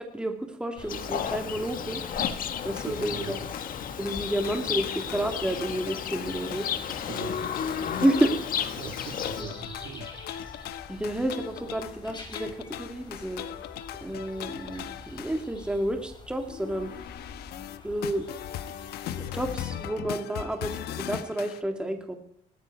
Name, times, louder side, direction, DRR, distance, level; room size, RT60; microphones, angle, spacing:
voice 1, 0.1-2.0 2.6-3.4 4.0-6.7 7.0-7.1 8.0-8.4 9.4-9.5 10.9-13.4 14.0-16.9 17.8-18.3 19.2-22.2, right 1 dB, 5° right, 4 dB, 2.1 m, -30 dB
sound 1, 0.8-19.9, left 3 dB, 25° left, 4.7 m, -46 dB
Livestock farm animals working animals, 0.9-9.4, left 8 dB, 55° left, 1.5 m, -33 dB
sound 2, 2.8-15.4 16.5-21.6, left 10 dB, 70° left, 1.0 m, -40 dB
voice 2, 2.9-3.4 7.1-7.4 8.8-10.1, right 9 dB, 80° right, 7 dB, 1.9 m, -41 dB
18.5 x 14.0 x 4.7 m, 0.69 s
cardioid pair, 110°, 17 cm